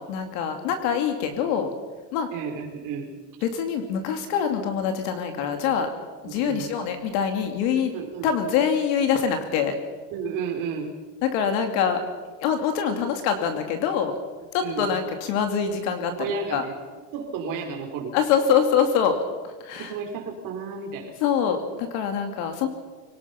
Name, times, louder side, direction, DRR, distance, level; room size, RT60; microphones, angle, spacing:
voice 1, 0.0-1.7 2.1-2.3 3.4-5.9 6.2-7.9 8.2-9.8 11.2-12.0 12.4-14.2 14.5-16.1 16.5-16.6 18.1-19.2 19.4-19.9 21.2-22.7, left 7 dB, 55° left, 6 dB, 2.6 m, -24 dB
voice 2, 2.3-3.1 6.2-6.7 7.9-8.3 10.1-10.9 14.6-14.9 16.1-16.8 17.1-18.2 19.8-21.1, right 5 dB, 40° right, 2 dB, 4.3 m, -32 dB
24.5 x 18.5 x 5.8 m, 1.4 s
cardioid pair, 170°, 48 cm